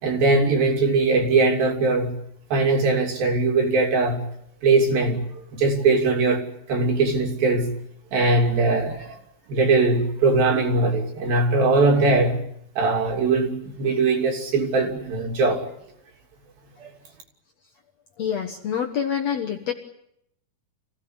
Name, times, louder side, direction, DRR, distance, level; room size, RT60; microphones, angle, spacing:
voice 1, 0.0-2.2 2.5-4.2 4.6-5.2 5.5-7.7 8.1-9.2 9.5-12.4 12.8-15.6 16.8-16.9, right 3 dB, 65° right, 2 dB, 4.7 m, -21 dB
voice 2, 18.2-19.7, left 8 dB, 55° left, 4 dB, 2.0 m, -26 dB
26.0 x 16.5 x 9.7 m, 0.76 s
omnidirectional pair, 4.5 m